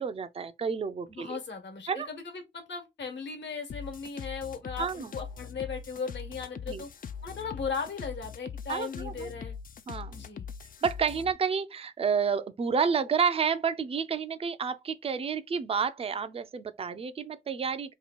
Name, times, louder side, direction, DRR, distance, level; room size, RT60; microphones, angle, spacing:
voice 1, 0.0-1.4 1.9-2.1 4.8-5.1 6.7-6.8 8.7-9.3 9.9-10.2 10.8-17.9, right 6 dB, 30° right, 0.4 m, -30 dB
voice 2, 1.1-6.9 7.2-9.6 10.1-10.5, left 5 dB, 65° left, 1.2 m, -37 dB
sound 1, 3.7-11.3, left 6 dB, 45° left, 0.4 m, -41 dB
3.0 x 2.3 x 4.3 m
cardioid pair, 85°, 20 cm